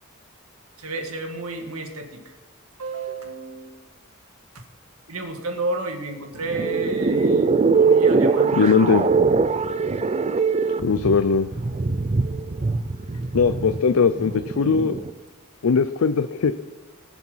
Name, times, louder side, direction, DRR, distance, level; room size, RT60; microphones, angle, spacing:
voice 1, 0.8-2.2 2.8-3.7 5.1-7.5 7.8-8.7, right 2 dB, 85° right, 5 dB, 1.8 m, -31 dB
sound 1, 6.3-15.1, right 4 dB, 30° right, 0.5 m, -22 dB
voice 2, 8.5-9.0 10.8-11.5 13.3-15.0 15.6-16.5, left 5 dB, 75° left, 10 dB, 0.5 m, -19 dB
19.5 x 7.1 x 5.7 m, 1.3 s
head